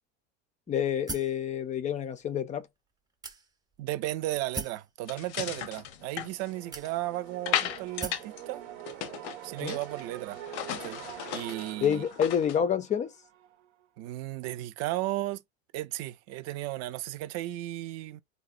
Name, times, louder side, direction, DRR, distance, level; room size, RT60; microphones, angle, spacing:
voice 1, 0.7-2.7 9.6-9.8 11.8-13.1, left 8 dB, 25° left, 0.3 m, -28 dB
sound 1, 1.1-1.4 2.2-2.3 3.2-3.8 4.5-4.9 5.8-5.9 6.7-7.3 8.0-8.3, right 3 dB, 10° right, 0.6 m, -39 dB
voice 2, 3.8-8.6 9.4-10.4 10.7-11.0 11.3-12.0 14.0-15.4 15.7-18.2, right 16 dB, 50° right, 0.4 m, -35 dB
sound 2, 5.1-7.0 7.5-8.4 8.7-10.0 10.3-12.6, left 11 dB, 85° left, 0.6 m, -35 dB
sound 3, 5.9-13.7, right 12 dB, 90° right, 0.7 m, -45 dB
3.5 x 2.0 x 2.4 m
supercardioid pair, 115°, 33 cm